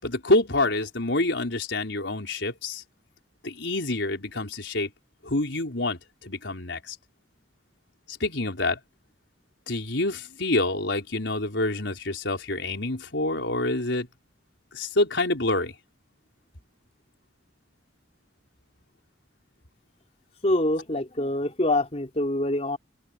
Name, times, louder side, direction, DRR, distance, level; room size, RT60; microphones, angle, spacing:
voice 1, 0.0-2.8 3.4-4.9 5.2-7.0 8.1-8.8 9.7-14.1 14.7-15.7, left 2 dB, 80° left, 4.4 m, -27 dB
voice 2, 20.4-22.8, left 1 dB, 35° left, 2.9 m, -25 dB
open air
head